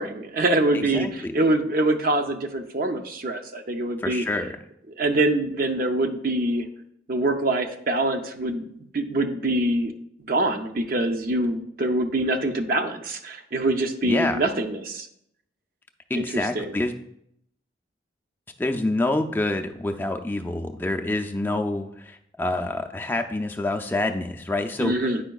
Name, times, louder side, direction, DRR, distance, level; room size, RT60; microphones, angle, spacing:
voice 1, 0.0-4.2 5.0-6.7 7.1-9.9 10.3-15.1 16.1-16.7 24.8-25.2, right 2 dB, 50° right, 6 dB, 0.6 m, -24 dB
voice 2, 0.7-1.3 4.0-4.5 14.0-14.4 16.1-16.9 18.6-24.9, left 2 dB, 10° left, 5 dB, 0.4 m, -27 dB
8.8 x 5.1 x 2.3 m, 0.74 s
head